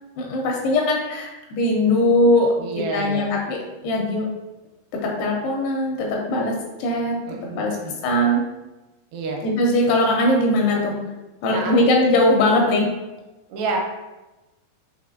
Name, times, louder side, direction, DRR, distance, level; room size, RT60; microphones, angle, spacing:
voice 1, 0.2-4.3 4.9-7.2 7.6-7.8 8.0-8.4 9.4-11.0 11.4-12.9, left 1 dB, 85° left, -1 dB, 2.5 m, -20 dB
voice 2, 2.6-3.3 7.3-7.9 9.1-9.4 11.5-11.9 12.7-12.9 13.5-13.8, right 4 dB, 80° right, 0 dB, 2.7 m, -29 dB
6.2 x 2.9 x 2.5 m, 1.1 s
omnidirectional pair, 4.9 m